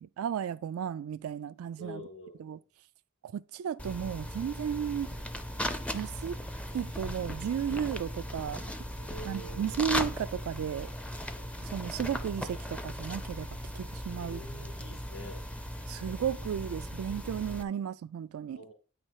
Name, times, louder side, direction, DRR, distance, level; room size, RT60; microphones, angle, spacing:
voice 1, 0.0-2.1 2.4-2.6 3.2-5.1 5.9-6.4 6.7-8.6 9.2-10.9 11.4-14.4 15.9-18.6, right 8 dB, 90° right, 0.3 m, -34 dB
voice 2, 1.8-2.6 9.0-9.7 14.1-15.4 18.6-18.7, equal, 65° left, 2.7 m, -46 dB
sound 1, 3.8-17.6, equal, 5° left, 0.4 m, -38 dB
8.9 x 4.3 x 4.6 m
head